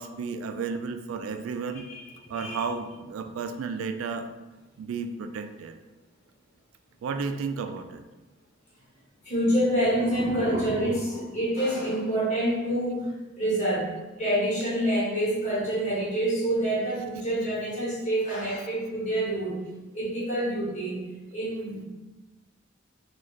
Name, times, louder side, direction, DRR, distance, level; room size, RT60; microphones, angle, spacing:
voice 1, 0.0-1.9 2.3-4.3 4.8-5.7 7.0-8.0, right 5 dB, 90° right, 9 dB, 0.3 m, -33 dB
voice 2, 1.9-2.6 9.2-13.9 14.2-19.6 19.9-21.0 21.3-21.8, right 1 dB, 35° left, -7 dB, 1.2 m, -27 dB
sound 1, 9.3-12.4, equal, 20° right, 0.6 m, -37 dB
3.1 x 2.3 x 3.9 m, 1.1 s
head